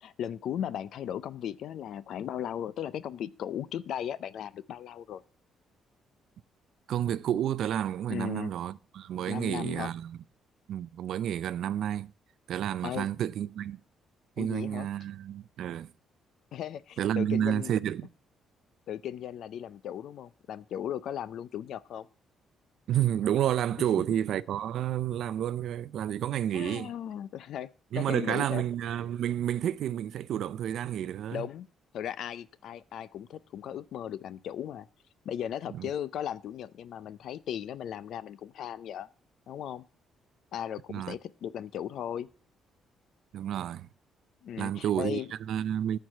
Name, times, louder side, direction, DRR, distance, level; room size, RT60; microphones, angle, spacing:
voice 1, 0.0-5.2 8.1-8.5 9.3-9.9 12.8-13.1 14.4-14.9 16.5-17.7 18.9-22.1 26.5-27.7 27.9-28.6 31.3-31.7 31.9-34.9 35.2-39.1 39.5-39.8 40.5-42.3 44.4-45.3, left 10 dB, 60° left, 0.5 m, -37 dB
voice 2, 6.9-10.2 10.7-12.1 12.5-13.8 14.4-15.9 17.0-18.1 22.9-26.9 27.9-31.5 35.7-35.9 40.9-41.2 43.3-43.9 44.6-45.2 45.5-46.0, right 10 dB, 60° right, 0.4 m, -30 dB
14.0 x 4.7 x 7.3 m
cardioid pair, 170°, 0 cm